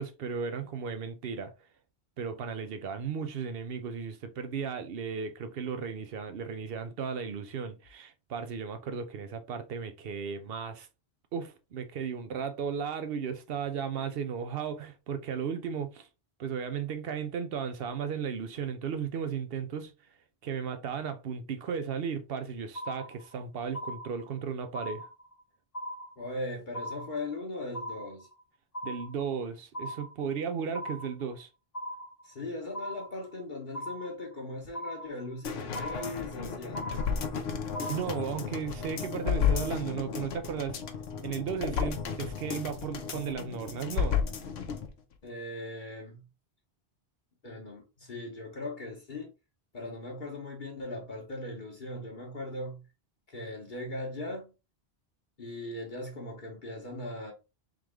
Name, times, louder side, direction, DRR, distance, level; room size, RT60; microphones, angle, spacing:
voice 1, 0.0-1.5 2.2-10.9 11.3-16.1 16.4-19.9 20.4-25.1 28.8-31.5 37.9-40.8 41.2-44.2, right 6 dB, 65° right, 0.9 m, -35 dB
sound 1, 22.7-23.4 23.7-24.4 24.7-25.4 25.7-26.4 26.7-27.4 27.7-28.4 28.7-29.4 29.7-30.4 30.7-31.4 31.7-32.4 32.7-33.4 33.7-34.4 34.7-35.4 35.7-36.4 36.7-37.4 37.7-38.0, equal, 35° left, 1.1 m, -40 dB
voice 2, 26.2-28.3 32.2-37.0 45.2-46.2 47.4-49.3 49.7-52.8 53.3-54.5 55.4-57.3, left 2 dB, 50° left, 1.2 m, -39 dB
sound 2, 35.4-44.9 45.2-45.3, left 7 dB, 80° left, 1.0 m, -33 dB
3.8 x 3.1 x 3.5 m
omnidirectional pair, 1.1 m